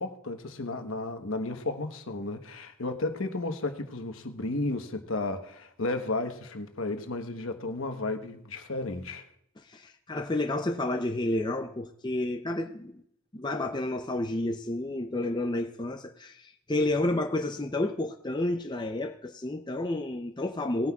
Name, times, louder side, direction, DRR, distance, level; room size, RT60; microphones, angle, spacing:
voice 1, 0.0-9.3, left 2 dB, 70° left, 1.1 m, -33 dB
voice 2, 9.6-13.0 13.3-20.9, left 2 dB, 20° left, 0.6 m, -30 dB
19.0 x 9.6 x 2.4 m
head